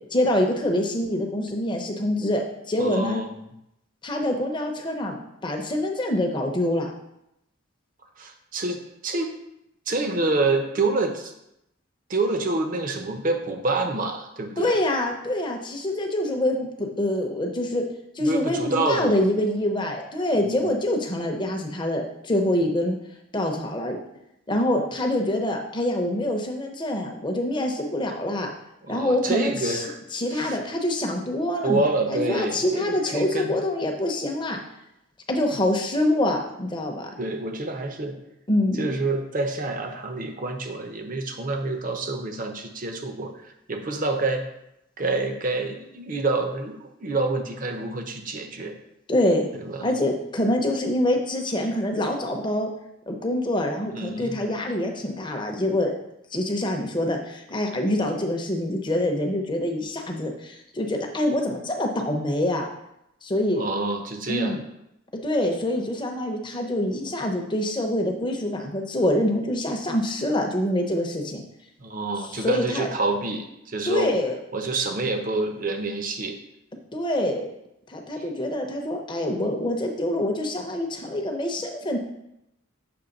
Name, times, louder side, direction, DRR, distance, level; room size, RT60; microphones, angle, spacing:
voice 1, 0.1-3.2 4.0-6.9 14.6-17.8 18.1-23.0 23.3-24.0 24.5-28.5 28.9-29.8 30.1-34.6 35.3-37.1 38.5-38.9 49.1-49.5 49.8-52.7 53.1-55.9 56.3-62.7 63.2-63.6 64.3-64.6 65.2-71.4 72.3-72.9 73.9-74.4 76.9-77.5 77.9-82.0, left 1 dB, 20° left, 3 dB, 0.7 m, -25 dB
voice 2, 2.8-3.5 8.2-9.4 9.9-11.3 12.1-14.8 18.2-19.1 20.3-20.7 28.8-30.0 30.3-30.6 31.6-33.5 37.2-38.2 38.8-44.4 45.0-48.8 49.5-49.9 53.9-54.4 63.6-64.6 71.8-74.2 74.5-76.4, right 2 dB, 40° right, 5 dB, 0.6 m, -27 dB
6.9 x 3.1 x 5.2 m, 0.84 s
head